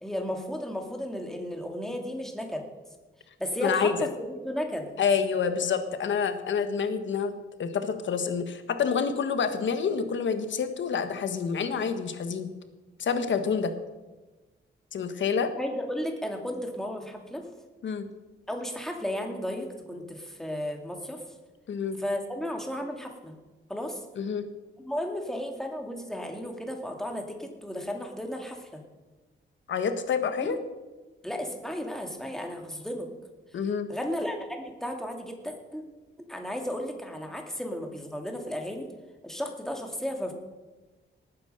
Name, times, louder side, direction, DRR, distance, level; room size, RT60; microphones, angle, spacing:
voice 1, 0.0-2.6 3.4-4.9 15.6-17.5 18.5-21.2 22.0-23.3 23.7-24.0 24.8-28.8 30.4-30.6 31.2-33.1 33.9-35.8 36.3-38.8 39.2-40.3, equal, ahead, 3 dB, 2.3 m, -34 dB
voice 2, 3.6-4.1 5.0-7.3 7.6-12.5 13.0-13.7 14.9-15.5 17.8-18.1 21.7-22.0 24.2-24.4 29.7-30.6 33.5-33.9, left 6 dB, 65° left, 9 dB, 1.5 m, -28 dB
18.5 x 9.6 x 6.7 m, 1.2 s
wide cardioid pair, 135°, 20 cm